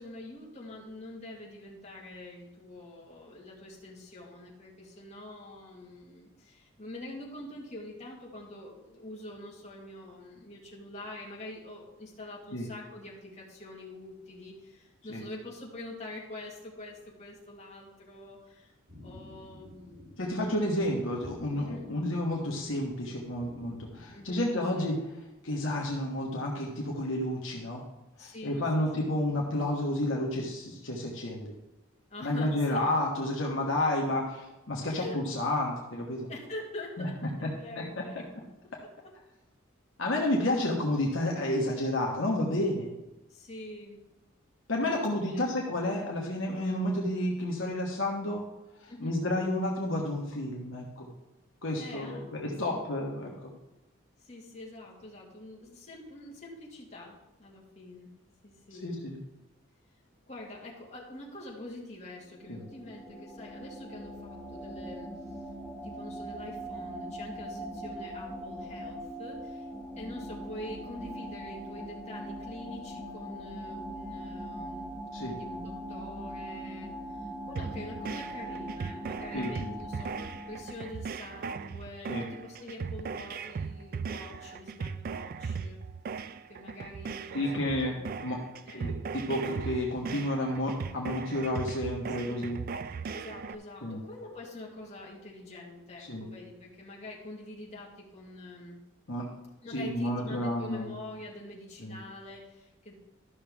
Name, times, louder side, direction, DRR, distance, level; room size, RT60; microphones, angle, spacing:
voice 1, 0.0-18.7 19.0-20.2 21.6-21.9 24.1-24.9 28.2-28.9 32.1-32.8 34.9-35.2 36.3-38.3 38.6-38.7 43.3-44.0 45.1-45.5 48.9-49.2 51.8-53.0 54.2-58.1 58.4-58.8 60.3-65.1 65.8-69.7 70.0-74.9 75.2-80.1 80.5-85.8 86.5-88.1 88.7-89.0 92.3-92.4 93.1-98.8 99.6-102.9, left 1 dB, 35° left, -4 dB, 1.9 m, -45 dB
sound 1, 18.9-24.4, left 1 dB, 85° right, 2.9 m, -51 dB
voice 2, 20.2-25.0 25.4-27.8 28.2-31.5 32.2-36.3 37.0-38.0 40.0-42.9 44.7-48.5 48.8-51.1 51.6-53.5 58.8-59.2 62.5-62.6 75.1-75.4 79.3-79.7 82.1-82.3 87.3-88.0 88.2-88.4 88.7-92.6 93.8-94.0 96.0-96.3 99.1-99.3 99.7-100.9 101.8-102.0, left 1 dB, 65° left, -2 dB, 1.3 m, -31 dB
sound 2, 62.2-81.1, right 1 dB, 5° right, 1.1 m, -41 dB
sound 3, 77.6-93.6, right 5 dB, 45° right, 0.3 m, -38 dB
13.0 x 6.0 x 3.5 m, 0.98 s
head